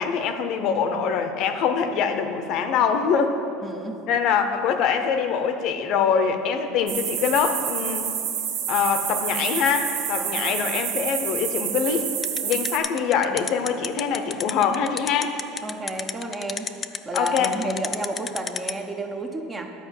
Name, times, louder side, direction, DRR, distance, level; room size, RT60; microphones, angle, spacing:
voice 1, 0.0-3.4 4.1-8.1 8.7-12.1 12.4-15.3 17.1-17.5, left 6 dB, 55° left, 7 dB, 0.7 m, -24 dB
voice 2, 3.6-4.0 10.2-10.6 15.6-16.7 17.1-19.7, right 1 dB, 15° right, 4 dB, 0.7 m, -31 dB
sound 1, 6.9-12.8, right 8 dB, 65° right, 0.8 m, -28 dB
sound 2, 12.2-18.7, left 6 dB, 25° left, 0.4 m, -29 dB
11.0 x 4.9 x 7.2 m, 2.7 s
supercardioid pair, 135°, 0 cm